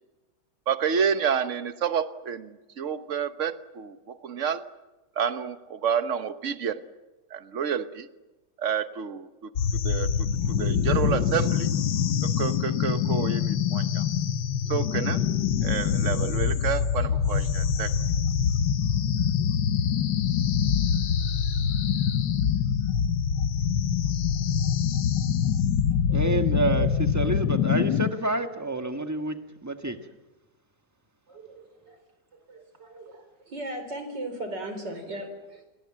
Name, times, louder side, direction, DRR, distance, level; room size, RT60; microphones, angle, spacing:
voice 1, 0.7-4.6 5.2-6.8 7.3-8.1 8.6-9.5 9.8-11.7 12.2-14.0 14.7-15.2 15.6-17.9, right 7 dB, 50° right, 11 dB, 1.4 m, -29 dB
sound 1, 9.6-28.1, left 8 dB, 90° left, 1.7 m, -25 dB
voice 2, 26.1-30.0, right 2 dB, 10° right, 6 dB, 1.4 m, -28 dB
voice 3, 31.3-32.0 32.5-35.7, right 1 dB, 90° right, 7 dB, 5.0 m, -37 dB
29.0 x 23.0 x 7.6 m, 1.1 s
omnidirectional pair, 1.8 m